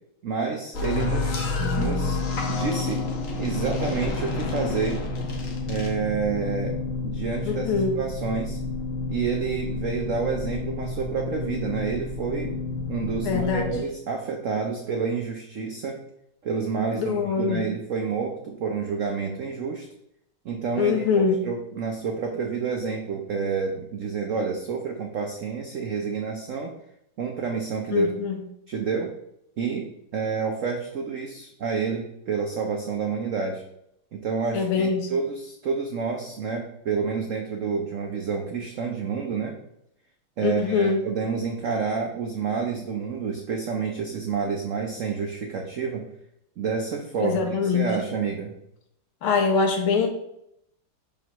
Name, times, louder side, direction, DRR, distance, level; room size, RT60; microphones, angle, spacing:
voice 1, 0.2-2.2 2.5-3.1 3.4-5.0 5.7-6.8 7.0-8.6 9.1-12.5 12.9-16.0 16.4-19.9 20.4-26.7 27.2-28.1 28.7-29.1 29.6-33.6 34.1-39.5 40.4-46.0 46.6-48.5, right 5 dB, 80° right, 3 dB, 0.7 m, -29 dB
sound 1, 0.7-13.8, left 3 dB, 50° left, 1.1 m, -29 dB
voice 2, 7.4-8.0 13.2-13.7 16.9-17.6 20.8-21.4 27.9-28.4 34.5-35.1 40.4-41.1 47.2-47.9 49.2-50.1, left 5 dB, 85° left, 3 dB, 1.9 m, -23 dB
6.1 x 5.2 x 3.0 m, 0.76 s
omnidirectional pair, 2.2 m